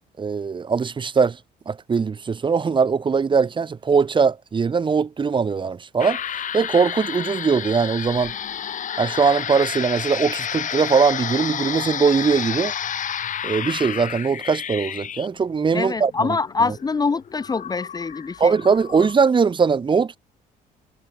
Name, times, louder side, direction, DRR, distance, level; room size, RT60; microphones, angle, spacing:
voice 1, 0.2-1.4 1.7-6.2 6.5-8.3 9.0-12.7 13.4-16.4 18.4-20.2, right 5 dB, 30° right, 1.5 m, -20 dB
sound 1, 6.0-19.2, left 9 dB, 50° left, 5.4 m, -30 dB
voice 2, 15.7-18.5, left 4 dB, 25° left, 0.9 m, -24 dB
cardioid pair, 110°, 17 cm